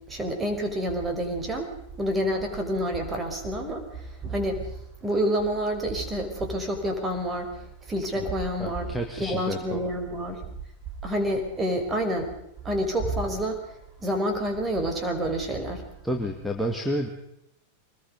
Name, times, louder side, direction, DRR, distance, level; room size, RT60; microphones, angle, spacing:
voice 1, 0.1-1.7 2.0-4.7 5.0-7.5 7.9-8.9 9.2-10.5 11.0-12.3 12.6-13.6 14.0-15.8, equal, 15° right, 4 dB, 5.3 m, -28 dB
voice 2, 8.6-9.8 16.0-17.1, equal, ahead, 0 dB, 2.4 m, -30 dB
24.5 x 21.0 x 5.4 m, 0.77 s
figure-of-eight pair, 90°, 0 cm